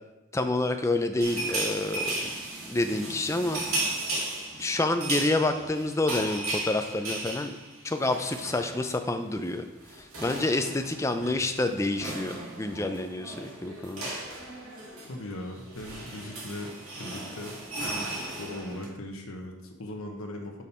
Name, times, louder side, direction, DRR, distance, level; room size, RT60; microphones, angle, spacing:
voice 1, 0.3-2.3 2.7-3.6 4.6-7.6 7.8-9.6 9.9-14.1, left 2 dB, 15° left, 7 dB, 0.4 m, -28 dB
sound 1, 1.2-9.1 9.3-9.5 9.8-18.9, right 2 dB, 80° right, 2.1 m, -36 dB
voice 2, 15.0-16.7 17.0-20.6, left 1 dB, 75° left, 2 dB, 1.1 m, -39 dB
6.3 x 5.3 x 4.3 m, 1.0 s
head